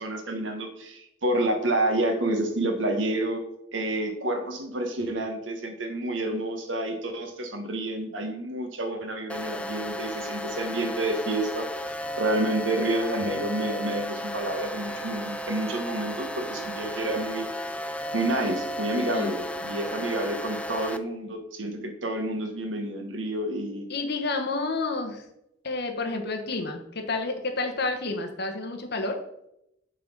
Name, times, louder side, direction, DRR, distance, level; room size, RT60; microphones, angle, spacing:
voice 1, 0.0-3.4 3.7-11.7 12.2-17.5 18.1-23.9, right 1 dB, 75° right, 5 dB, 1.3 m, -29 dB
sound 1, 9.3-21.0, left 1 dB, 5° left, 0.3 m, -34 dB
voice 2, 19.0-19.3 23.9-25.2 25.6-29.2, left 3 dB, 60° left, 4 dB, 1.2 m, -30 dB
7.5 x 4.1 x 5.3 m, 0.81 s
head